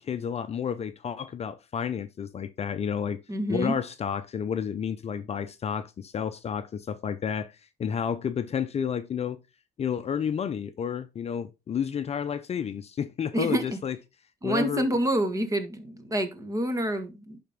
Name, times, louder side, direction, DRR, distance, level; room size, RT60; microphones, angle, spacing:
voice 1, 0.0-3.2 3.5-7.5 7.8-9.4 9.8-14.0 14.4-14.9, left 7 dB, 40° left, 0.7 m, -31 dB
voice 2, 3.3-3.8 13.3-13.8 14.4-17.4, right 1 dB, 20° right, 1.5 m, -28 dB
11.0 x 4.3 x 3.6 m
cardioid pair, 110°, 17 cm